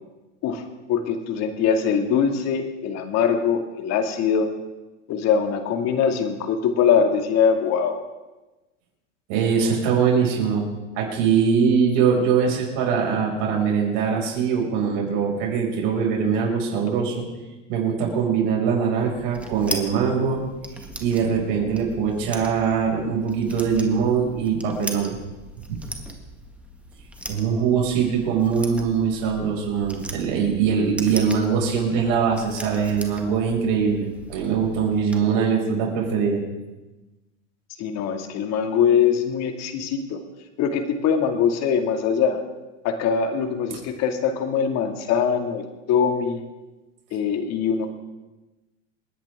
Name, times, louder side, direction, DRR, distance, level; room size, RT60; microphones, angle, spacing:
voice 1, 0.9-4.5 5.1-8.0 37.8-40.2 40.6-42.4 42.8-46.4 47.1-47.9, left 7 dB, 45° left, 5 dB, 2.2 m, -22 dB
voice 2, 9.3-10.7 10.9-17.3 17.7-20.4 21.0-25.1 25.7-25.8 27.3-36.4 43.7-43.8, right 6 dB, 60° right, -1 dB, 5.8 m, -22 dB
sound 1, 19.0-35.2, right 1 dB, 5° right, 1.8 m, -39 dB
28.0 x 10.5 x 3.6 m, 1.1 s
hypercardioid pair, 110°, 38 cm